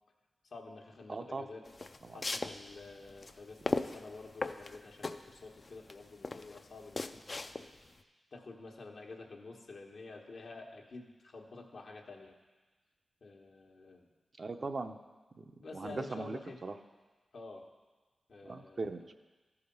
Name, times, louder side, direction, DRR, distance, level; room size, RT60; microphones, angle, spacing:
voice 1, 0.4-1.6 2.1-7.2 8.3-12.3 13.2-14.1 15.6-16.6 17.3-17.6 18.3-19.0, left 3 dB, 70° left, 1 dB, 1.2 m, -49 dB
voice 2, 1.1-1.4 2.1-2.2 14.4-15.0 15.4-15.5 15.7-16.7 18.5-19.1, right 3 dB, 55° right, 6 dB, 0.6 m, -39 dB
sound 1, 1.6-7.9, left 3 dB, 45° left, 0.4 m, -38 dB
13.0 x 4.9 x 5.4 m, 1.3 s
cardioid pair, 55°, 0 cm